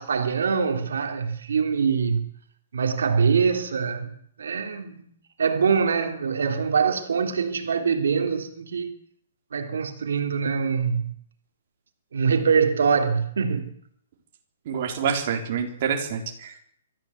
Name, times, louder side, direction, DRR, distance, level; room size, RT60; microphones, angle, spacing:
voice 1, 0.0-2.3 2.7-4.1 4.4-5.1 5.4-8.9 9.5-11.1 12.1-13.7, right 6 dB, 70° right, 3.0 m, -24 dB
voice 2, 14.7-16.5, right 7 dB, 30° right, 3.8 m, -27 dB
24.5 x 14.0 x 8.3 m
hypercardioid pair, 180°, 0 cm